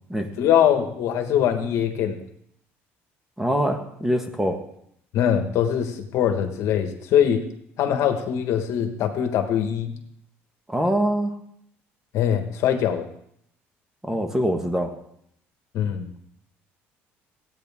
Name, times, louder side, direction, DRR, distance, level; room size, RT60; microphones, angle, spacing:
voice 1, 0.4-2.2 5.1-7.4 7.8-9.9 12.1-13.1 15.7-16.1, left 9 dB, 70° left, 5 dB, 1.5 m, -22 dB
voice 2, 3.4-4.6 10.7-11.3 14.0-14.9, equal, 10° right, 4 dB, 1.5 m, -24 dB
16.0 x 9.2 x 3.6 m, 0.71 s
cardioid pair, 110°, 5 cm